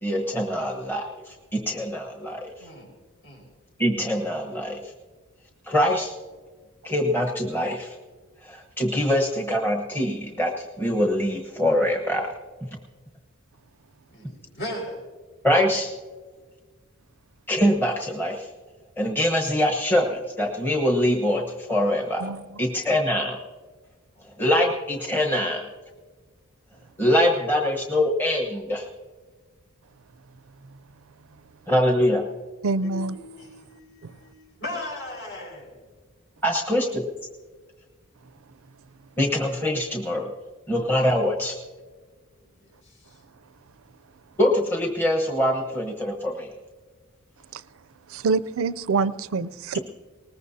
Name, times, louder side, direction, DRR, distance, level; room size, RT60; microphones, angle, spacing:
voice 1, 0.0-2.5 3.8-4.8 5.7-6.1 6.8-7.9 8.4-12.3 15.4-15.9 17.5-18.5 19.0-22.3 22.6-23.4 24.4-25.7 27.0-28.9 31.7-32.2 36.4-37.0 39.2-40.3 40.7-41.5 44.4-46.5 49.7-49.8, left 1 dB, 10° left, 0 dB, 1.0 m, -23 dB
voice 2, 2.6-2.9 3.2-3.5 14.1-15.0 24.2-24.3 32.8-35.7, left 1 dB, 60° left, 0 dB, 4.8 m, -37 dB
voice 3, 32.6-33.2 34.0-34.1 47.5-47.6 48.1-49.8, right 4 dB, 65° right, 15 dB, 0.4 m, -25 dB
20.5 x 19.5 x 2.7 m, 1.4 s
head